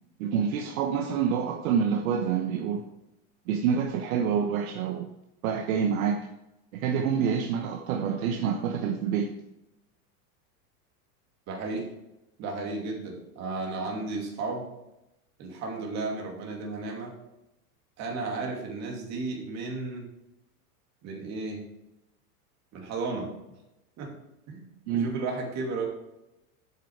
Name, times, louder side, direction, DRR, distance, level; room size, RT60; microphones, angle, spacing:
voice 1, 0.2-2.8 3.5-5.1 5.4-6.2 6.7-9.3 24.9-25.1, right 7 dB, 65° right, 4 dB, 1.1 m, -27 dB
voice 2, 11.5-11.8 12.4-14.7 15.4-17.1 18.0-20.1 21.0-21.6 22.7-23.3 24.0-24.1 24.5-25.9, right 3 dB, 35° right, 0 dB, 2.6 m, -34 dB
8.3 x 6.9 x 4.6 m, 0.90 s
supercardioid pair, 140°, 45 cm